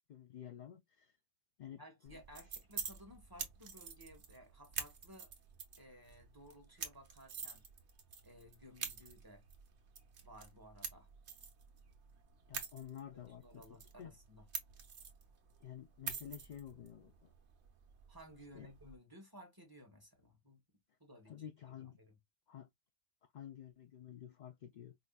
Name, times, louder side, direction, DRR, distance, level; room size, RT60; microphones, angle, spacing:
voice 1, 0.1-1.1 1.6-2.2 12.5-13.6 14.0-14.1 15.6-17.3 18.5-18.7 21.3-22.0 22.5-22.7 23.3-25.0, left 10 dB, 65° left, 0.4 m, -51 dB
voice 2, 1.8-5.3 5.8-7.6 8.2-9.4 10.2-11.1 13.1-14.5 18.1-20.6 21.0-21.5 21.8-22.2, equal, 20° right, 1.2 m, -57 dB
sound 1, 2.1-19.0, right 6 dB, 65° right, 1.2 m, -48 dB
4.9 x 2.7 x 2.2 m
omnidirectional pair, 1.2 m